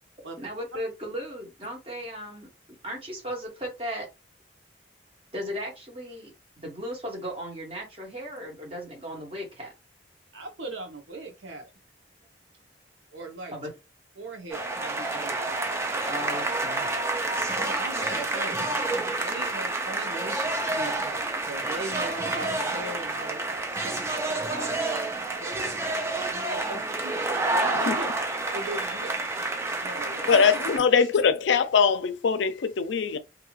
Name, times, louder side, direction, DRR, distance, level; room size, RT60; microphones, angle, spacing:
voice 1, 0.4-2.5 2.8-4.1 5.3-9.7 13.5-13.7 16.0-16.9, equal, 30° right, 1.3 m, -36 dB
voice 2, 10.3-11.7 13.1-13.6 14.2-15.4 17.2-18.7 19.2-24.0 24.5-25.5 26.3-27.4 27.8-28.1 28.5-29.2 29.8-30.6 30.9-31.0, right 2 dB, 90° right, 1.0 m, -39 dB
sound 1, 14.5-30.8, right 2 dB, 15° right, 0.4 m, -29 dB
voice 3, 27.6-28.0 30.3-33.2, left 6 dB, 80° left, 0.4 m, -22 dB
2.6 x 2.4 x 3.0 m
head